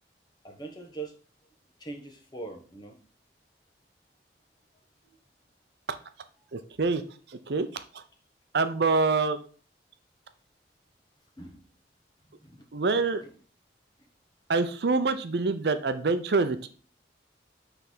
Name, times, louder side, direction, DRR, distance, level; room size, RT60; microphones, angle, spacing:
voice 1, 0.4-1.1 1.8-2.9 11.4-11.6 12.4-12.6, right 3 dB, 25° left, 3 dB, 1.1 m, -41 dB
voice 2, 6.5-7.0 7.3-8.0 8.5-9.4 12.7-13.2 14.5-16.7, right 3 dB, 65° right, 10 dB, 0.6 m, -26 dB
5.9 x 3.4 x 5.9 m, 0.41 s
head